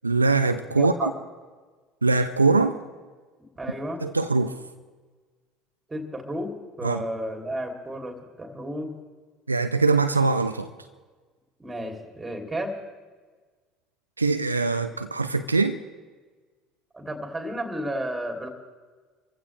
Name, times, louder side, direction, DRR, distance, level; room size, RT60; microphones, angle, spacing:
voice 1, 0.0-1.1 2.0-2.8 4.0-4.5 6.8-7.0 9.5-10.7 14.2-15.8, right 3 dB, 90° right, 9 dB, 0.5 m, -22 dB
voice 2, 0.8-1.1 3.6-4.0 5.9-9.0 11.6-12.8 16.9-18.5, right 1 dB, 15° right, 3 dB, 3.0 m, -32 dB
26.0 x 15.0 x 3.3 m, 1.4 s
figure-of-eight pair, 60°, 0 cm